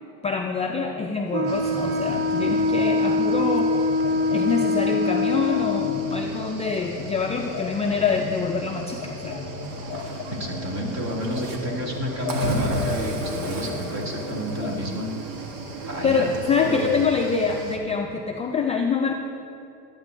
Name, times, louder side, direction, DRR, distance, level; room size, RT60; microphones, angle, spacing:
voice 1, 0.2-3.8 4.3-9.5 16.0-19.1, left 5 dB, 15° left, 1 dB, 0.3 m, -25 dB
sound 1, 0.8-14.8, left 6 dB, 35° left, 0.8 m, -37 dB
Wind instrument woodwind instrument, 1.3-6.2, left 3 dB, 65° right, 1.0 m, -23 dB
Cricket / Waves surf, 1.5-17.8, right 2 dB, 90° right, 1.1 m, -35 dB
voice 2, 10.3-15.1 15.9-16.3 16.6-16.8, equal, 40° right, -1 dB, 2.0 m, -30 dB
13.0 x 8.9 x 2.6 m, 2.6 s
supercardioid pair, 110°, 42 cm